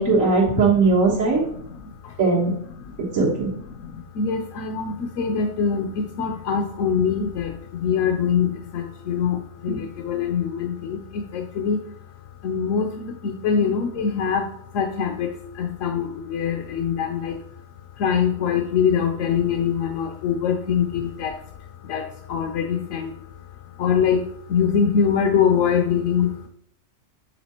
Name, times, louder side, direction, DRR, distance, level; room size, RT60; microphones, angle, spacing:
voice 1, 0.0-1.4 2.2-2.5 3.1-3.5 9.7-9.8, right 3 dB, 85° right, -5 dB, 1.8 m, -19 dB
voice 2, 1.4-2.2 2.7-3.0 3.4-11.8 12.4-17.4 18.0-21.5 21.8-23.2 23.8-26.5, left 7 dB, 75° left, 5 dB, 1.0 m, -24 dB
7.2 x 3.7 x 4.3 m, 0.66 s
omnidirectional pair, 1.3 m